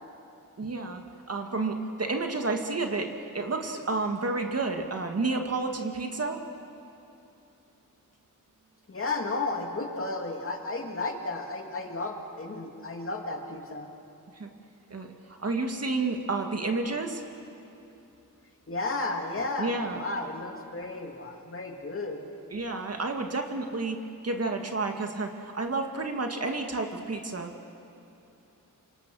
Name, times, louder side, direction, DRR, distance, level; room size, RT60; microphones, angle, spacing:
voice 1, 0.6-1.0 1.3-6.4 14.4-14.5 14.9-17.2 19.6-20.0 22.5-24.0 24.2-27.5, right 3 dB, 45° right, 4 dB, 1.9 m, -30 dB
voice 2, 8.9-13.9 18.7-22.3, left 2 dB, 40° left, 2 dB, 2.5 m, -33 dB
27.5 x 25.5 x 6.3 m, 2.9 s
wide cardioid pair, 130°, 34 cm